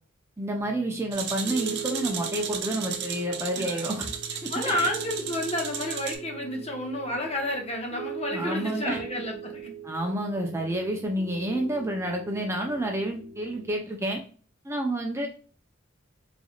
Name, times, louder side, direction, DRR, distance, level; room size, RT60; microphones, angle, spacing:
voice 1, 0.4-4.1 4.6-4.9 8.3-9.0 9.8-14.2 14.6-15.3, right 1 dB, 15° right, 1 dB, 0.6 m, -29 dB
Piano, 0.6-13.7, right 6 dB, 40° right, 1.2 m, -41 dB
sound 1, 1.1-6.2, right 7 dB, 60° right, 0.8 m, -35 dB
voice 2, 4.5-9.7, left 1 dB, 30° left, 1 dB, 1.1 m, -31 dB
4.0 x 3.3 x 2.4 m, 0.40 s
head